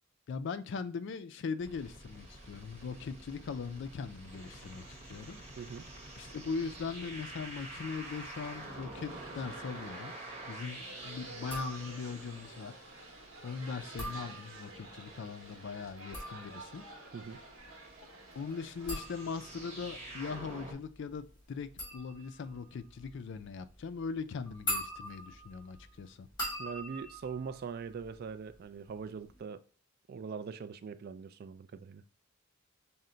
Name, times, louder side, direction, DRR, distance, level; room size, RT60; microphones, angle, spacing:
voice 1, 0.3-5.4 6.2-10.1 10.5-12.7 13.4-16.8 18.3-26.3, left 5 dB, 60° left, 0.4 m, -40 dB
sound 1, 1.6-20.7, right 2 dB, 30° right, 1.1 m, -49 dB
voice 2, 5.6-5.9 17.1-17.4 26.6-29.6 30.1-32.0, right 5 dB, 50° right, 0.3 m, -42 dB
sound 2, 8.9-19.0, right 2 dB, 80° right, 0.9 m, -51 dB
sound 3, 11.4-12.2 13.8-14.9 15.9-28.6 28.9-29.4, equal, 20° left, 2.3 m, -43 dB
5.5 x 2.1 x 3.8 m
head